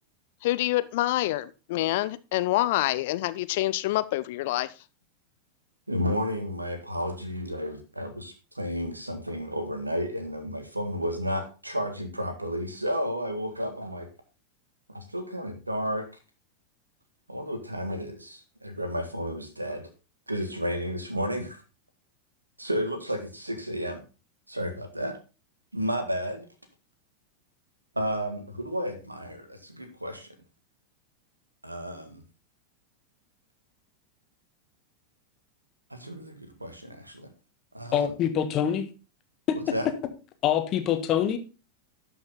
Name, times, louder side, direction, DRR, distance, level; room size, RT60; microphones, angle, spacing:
voice 1, 0.4-4.7, left 16 dB, 50° left, 0.5 m, -26 dB
voice 2, 5.9-14.1 14.9-16.1 17.3-19.9 20.3-21.6 22.6-24.0 24.5-25.1 25.7-26.5 27.9-30.3 31.6-32.2 35.9-37.3 37.7-38.1 39.7-39.9, equal, 85° right, 1.8 m, -32 dB
voice 3, 37.9-38.9 40.4-41.4, left 9 dB, 35° left, 1.3 m, -25 dB
12.0 x 5.7 x 3.8 m
figure-of-eight pair, 90°, 0 cm